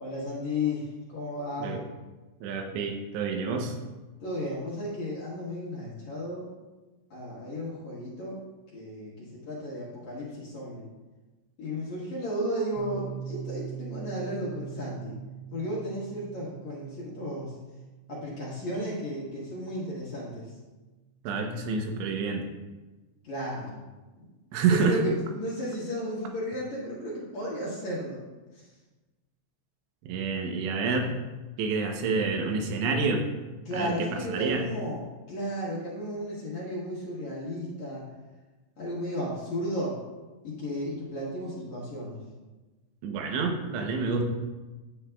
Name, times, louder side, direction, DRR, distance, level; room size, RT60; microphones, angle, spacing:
voice 1, 0.0-1.8 4.2-6.5 7.1-8.4 8.7-10.9 11.6-15.1 15.5-17.6 18.1-20.5 23.2-23.8 24.2-24.3 24.7-28.2 28.5-28.7 33.7-38.0 38.8-40.0 40.4-42.2, equal, 60° left, -7 dB, 2.1 m, -34 dB
voice 2, 2.4-3.8 21.2-22.5 24.5-25.0 30.1-31.1 31.6-33.2 33.7-34.7 43.0-44.2, right 4 dB, 85° right, 3 dB, 3.1 m, -28 dB
Piano, 12.8-20.2, right 9 dB, 85° left, 2.1 m, -43 dB
9.6 x 8.4 x 2.3 m, 1.2 s
omnidirectional pair, 4.9 m